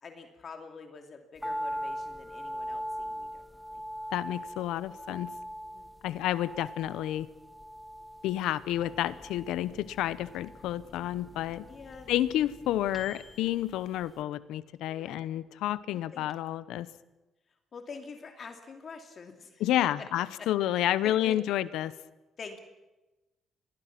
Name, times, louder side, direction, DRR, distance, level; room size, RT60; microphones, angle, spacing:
voice 1, 0.0-3.8 5.7-6.2 11.7-12.1 14.9-15.2 15.9-16.2 17.7-19.9 20.4-21.4 22.4-22.6, left 5 dB, 45° left, 5 dB, 2.7 m, -46 dB
sound 1, 1.4-13.7 14.0-14.1, equal, ahead, 0.9 m, -41 dB
voice 2, 4.1-5.3 6.0-7.3 8.2-11.6 12.1-16.9 19.6-21.9, left 13 dB, 90° left, 16 dB, 0.9 m, -30 dB
Microwave oven, 8.7-14.8 15.2-15.3 15.5-16.2, left 2 dB, 30° left, 2.6 m, -54 dB
26.0 x 20.5 x 6.0 m, 1.1 s
cardioid pair, 100°, 0 cm